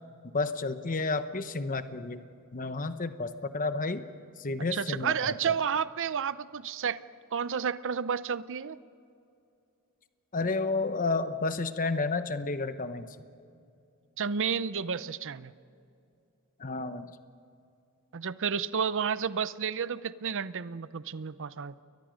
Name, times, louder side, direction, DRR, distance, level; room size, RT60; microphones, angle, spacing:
voice 1, 0.3-2.2 2.5-4.0 4.4-5.5 10.3-13.2 16.6-17.1, left 3 dB, 40° left, 10 dB, 0.9 m, -31 dB
voice 2, 4.7-7.0 7.3-8.8 14.2-15.5 18.1-21.8, right 7 dB, 60° right, 15 dB, 0.7 m, -31 dB
30.0 x 23.0 x 5.2 m, 2.6 s
head